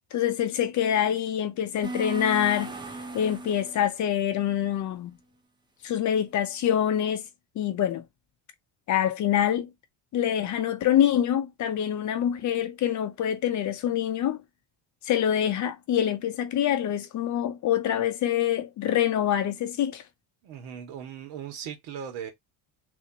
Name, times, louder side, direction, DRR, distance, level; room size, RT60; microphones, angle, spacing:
voice 1, 0.1-2.7 3.1-5.1 5.8-7.2 7.6-8.0 8.9-9.7 10.1-14.4 15.0-20.0, left 10 dB, 40° left, 0.5 m, -25 dB
sound 1, 1.8-3.9, right 2 dB, 10° right, 0.5 m, -36 dB
voice 2, 20.4-22.3, right 8 dB, 75° right, 1.8 m, -38 dB
3.5 x 2.9 x 2.8 m
cardioid pair, 160°, 47 cm